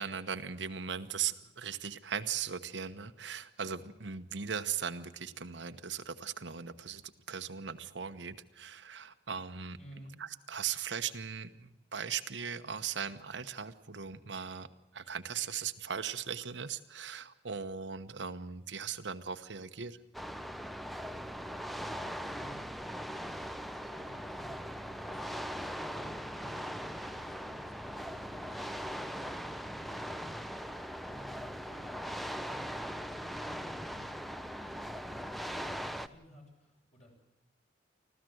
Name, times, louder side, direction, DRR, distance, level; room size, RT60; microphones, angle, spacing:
voice 1, 0.0-9.8 10.2-14.7 14.9-20.0, right 7 dB, 75° right, 9 dB, 1.1 m, -38 dB
voice 2, 9.8-10.1 21.5-22.7 23.1-23.5 23.9-24.7 25.0-26.6 26.9-37.1, equal, 40° left, 1 dB, 7.9 m, -56 dB
sound 1, 20.1-36.1, equal, ahead, 0.7 m, -40 dB
25.0 x 15.5 x 7.8 m, 0.94 s
head